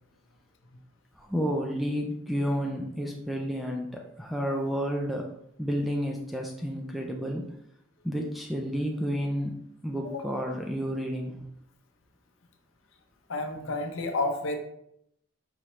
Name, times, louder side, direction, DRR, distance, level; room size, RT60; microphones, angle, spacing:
voice 1, 1.2-5.2 5.6-7.4 8.0-9.6 9.8-11.5, equal, ahead, 1 dB, 0.3 m, -31 dB
voice 2, 13.3-14.6, left 2 dB, 65° left, 4 dB, 0.6 m, -30 dB
4.8 x 3.1 x 3.0 m, 0.75 s
head